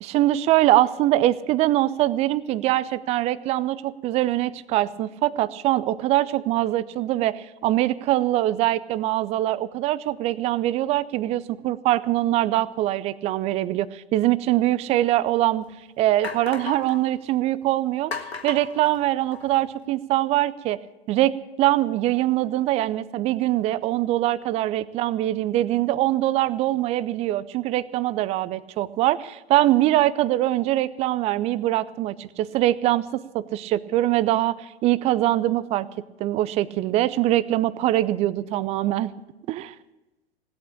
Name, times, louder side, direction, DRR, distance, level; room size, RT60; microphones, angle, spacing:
voice 1, 0.0-15.6 16.0-18.1 18.4-20.8 21.1-35.9 36.2-39.1 39.5-39.7, right 15 dB, 20° right, 17 dB, 0.4 m, -23 dB
sound 1, 14.9-15.0 15.6-15.7 16.2-17.0 18.1-19.6, left 4 dB, 85° left, 1.7 m, -35 dB
17.0 x 8.6 x 8.5 m, 1.0 s
figure-of-eight pair, 95°, 31 cm